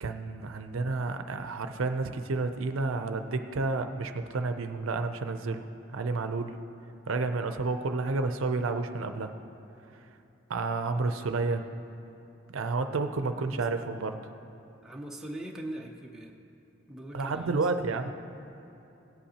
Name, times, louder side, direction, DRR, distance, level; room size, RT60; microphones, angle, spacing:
voice 1, 0.0-6.5 7.1-9.3 10.5-11.7 12.5-14.2 17.1-18.1, right 3 dB, 75° right, 8 dB, 0.5 m, -30 dB
voice 2, 14.8-16.4 16.9-18.0, right 1 dB, 5° right, -1 dB, 0.7 m, -41 dB
17.5 x 8.2 x 2.9 m, 2.9 s
head